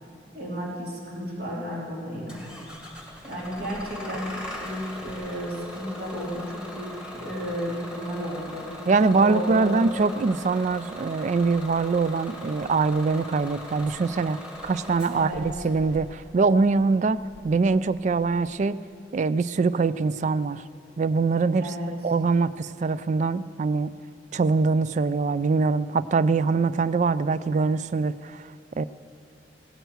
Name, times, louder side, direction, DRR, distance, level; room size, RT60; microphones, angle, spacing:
voice 1, 0.3-2.4 3.2-8.7 9.1-9.8 15.1-15.4 21.6-21.9, equal, 55° right, -3 dB, 3.2 m, -33 dB
Bus / Engine starting, 2.3-18.5, left 1 dB, 5° right, 1.7 m, -41 dB
voice 2, 8.9-18.8 19.1-20.6 21.0-21.7 22.0-23.9 24.3-28.5 28.8-28.9, right 4 dB, 40° right, 16 dB, 0.3 m, -23 dB
17.0 x 9.3 x 8.0 m, 2.5 s
head